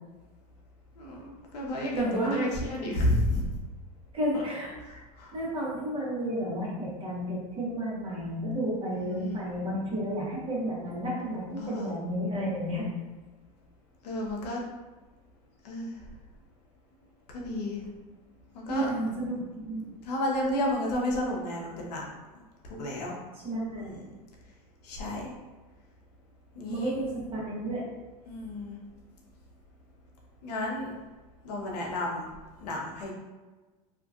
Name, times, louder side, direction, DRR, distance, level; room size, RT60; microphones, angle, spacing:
voice 1, 1.0-3.4 4.3-4.4 4.9-5.3 9.0-9.4 11.6-11.9 14.0-14.6 15.6-15.9 17.3-17.8 18.5-18.9 20.0-22.0 22.6-23.2 23.8-24.0 24.8-25.3 26.5-26.9 28.3-28.8 30.4-30.9 31.4-32.3 32.6-33.1, left 1 dB, 80° left, -1 dB, 0.8 m, -31 dB
voice 2, 1.9-2.5 4.1-5.0 5.3-12.9 18.7-19.9 23.4-23.9 26.7-27.8, right 1 dB, 25° right, -5 dB, 1.1 m, -32 dB
2.9 x 2.4 x 2.4 m, 1.2 s
hypercardioid pair, 100°, 21 cm